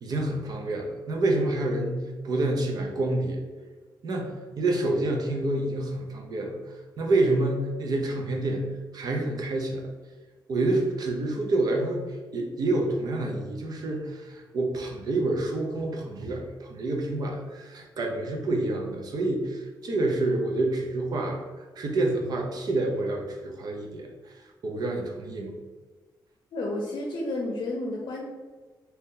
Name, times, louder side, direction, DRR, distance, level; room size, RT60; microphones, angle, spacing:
voice 1, 0.0-3.4 4.0-6.6 7.0-9.9 10.5-12.0 12.3-25.6, right 2 dB, 60° right, 1 dB, 0.7 m, -28 dB
voice 2, 26.5-28.2, left 2 dB, 75° left, -1 dB, 0.6 m, -31 dB
2.8 x 2.8 x 3.7 m, 1.3 s
wide cardioid pair, 130°, 8 cm